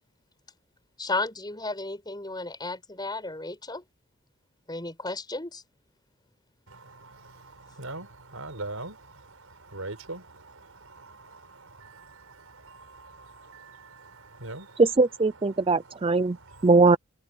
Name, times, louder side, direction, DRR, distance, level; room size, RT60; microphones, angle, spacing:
voice 1, 1.0-3.8 4.7-5.6, left 2 dB, 20° left, 6.3 m, -33 dB
voice 2, 6.7-14.8 16.5-16.7, right 2 dB, 85° right, 5.0 m, -43 dB
voice 3, 14.8-16.4 16.6-17.0, right 3 dB, 25° right, 0.4 m, -20 dB
head